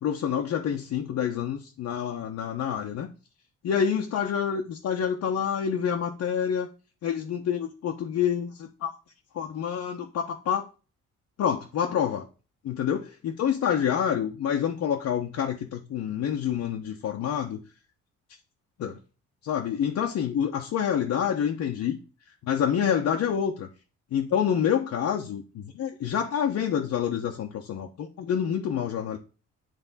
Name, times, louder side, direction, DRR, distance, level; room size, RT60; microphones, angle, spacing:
voice 1, 0.0-3.1 3.6-6.7 7.0-9.0 9.3-10.6 11.4-12.2 12.6-17.6 18.8-19.0 19.4-22.0 22.4-23.7 24.1-29.2, left 8 dB, 65° left, 0.8 m, -27 dB
9.1 x 3.4 x 4.1 m
cardioid pair, 90°, 30 cm